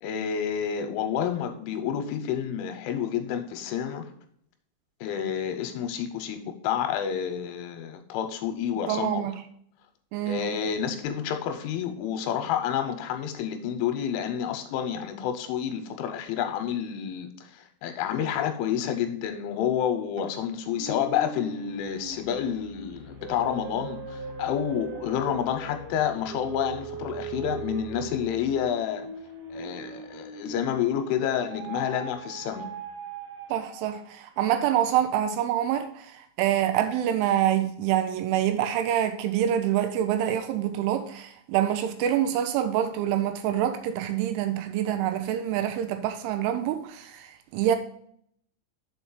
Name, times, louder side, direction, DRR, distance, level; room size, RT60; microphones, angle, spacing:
voice 1, 0.0-4.1 5.0-9.2 10.3-29.1 29.5-32.7, left 9 dB, 85° left, 3.0 m, -29 dB
voice 2, 8.9-9.3 10.1-10.6 33.5-47.8, right 10 dB, 85° right, 2.9 m, -26 dB
sound 1, 20.7-30.9 31.4-34.2, right 4 dB, 70° right, 2.1 m, -40 dB
7.0 x 4.7 x 5.5 m
omnidirectional pair, 5.8 m